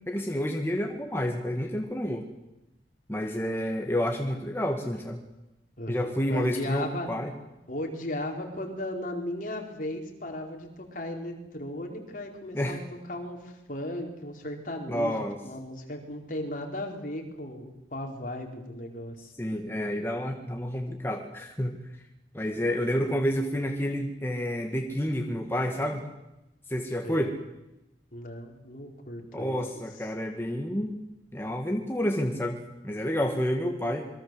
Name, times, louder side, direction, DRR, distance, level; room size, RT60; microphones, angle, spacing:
voice 1, 0.1-2.3 3.1-5.2 5.9-7.3 12.5-12.8 14.9-15.4 19.4-21.8 22.3-26.0 26.7-27.3 29.3-31.0 31.3-34.1, equal, 15° left, 2 dB, 2.0 m, -29 dB
voice 2, 5.8-7.1 7.7-12.8 13.1-19.3 27.0-27.2 28.1-29.6, left 1 dB, 50° left, 2 dB, 4.6 m, -36 dB
27.5 x 22.5 x 7.9 m, 0.92 s
head